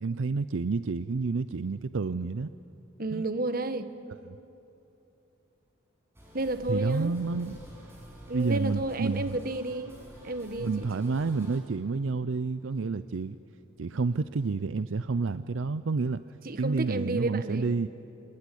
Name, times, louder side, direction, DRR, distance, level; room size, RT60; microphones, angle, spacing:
voice 1, 0.0-2.5 3.1-3.2 4.3-4.4 6.7-7.6 8.3-9.4 10.6-13.4 13.8-16.2 16.6-17.9, right 4 dB, 70° right, 13 dB, 0.5 m, -29 dB
voice 2, 3.0-3.9 6.3-7.1 8.3-10.0 10.2-11.0 16.4-17.7, right 2 dB, 45° right, 10 dB, 1.3 m, -31 dB
sound 1, 6.1-11.6, equal, 10° right, 6.9 m, -50 dB
25.5 x 20.5 x 9.9 m, 2.8 s
head